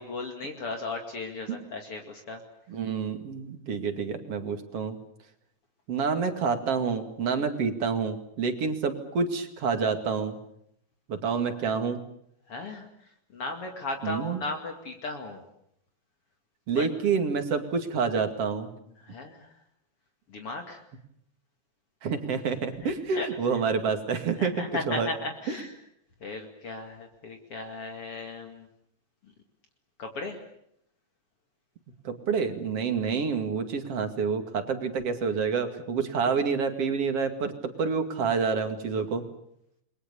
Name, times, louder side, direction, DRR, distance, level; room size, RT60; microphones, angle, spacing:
voice 1, 0.0-2.4 12.5-12.9 13.3-15.4 16.7-16.9 19.0-19.5 20.3-20.8 22.8-23.3 24.4-25.7 26.2-28.7 30.0-30.4, left 3 dB, 50° left, 4 dB, 3.1 m, -36 dB
voice 2, 2.7-5.0 5.9-10.4 11.1-12.0 14.0-14.4 16.7-18.7 22.0-25.1 32.0-39.2, right 5 dB, 55° right, 7 dB, 3.2 m, -28 dB
29.5 x 22.5 x 7.0 m, 0.74 s
omnidirectional pair, 3.4 m